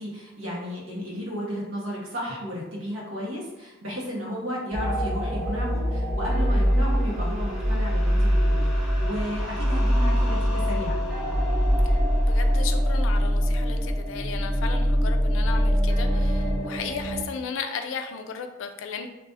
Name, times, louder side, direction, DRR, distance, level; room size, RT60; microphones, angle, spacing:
voice 1, 0.0-11.0, equal, 90° right, -3 dB, 0.9 m, -33 dB
sound 1, 4.7-17.2, equal, 5° right, 0.5 m, -23 dB
voice 2, 12.2-19.1, left 6 dB, 70° left, 6 dB, 0.3 m, -35 dB
2.4 x 2.4 x 3.8 m, 1.0 s
head